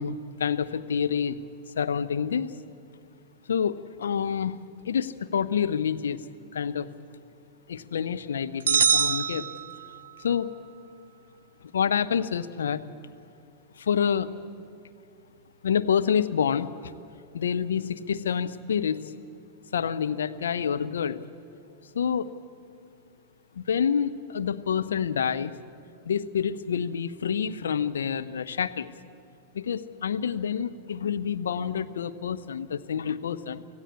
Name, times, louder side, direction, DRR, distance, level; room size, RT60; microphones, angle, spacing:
voice 1, 0.0-1.4 1.8-2.6 3.5-6.2 6.5-6.9 7.7-9.5 10.2-10.5 11.7-12.8 13.8-14.3 15.6-16.7 17.3-19.0 19.7-21.2 21.9-22.3 23.6-25.5 26.1-28.9 29.5-33.6, left 7 dB, 65° left, 10 dB, 0.8 m, -27 dB
sound 1, 8.7-10.2, right 7 dB, 70° right, 0.5 m, -24 dB
26.5 x 16.5 x 8.4 m, 2.4 s
figure-of-eight pair, 90°, 0 cm